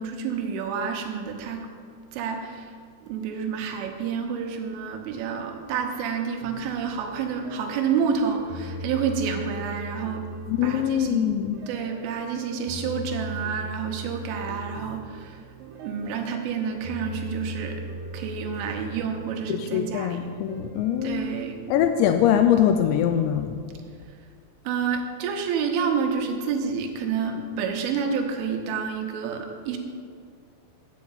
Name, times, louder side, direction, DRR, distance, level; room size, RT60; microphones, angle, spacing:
voice 1, 0.0-1.7 2.1-2.7 3.0-10.3 10.6-11.3 11.7-15.4 15.8-17.8 18.1-20.2 21.0-21.7 24.7-29.8, right 6 dB, 90° right, 3 dB, 3.6 m, -29 dB
sound 1, 6.4-23.1, right 1 dB, 75° right, 2.1 m, -40 dB
voice 2, 10.5-11.6 19.5-21.3 21.7-23.6, left 9 dB, 85° left, 7 dB, 2.6 m, -23 dB
8.4 x 8.4 x 7.2 m, 2.1 s
omnidirectional pair, 5.5 m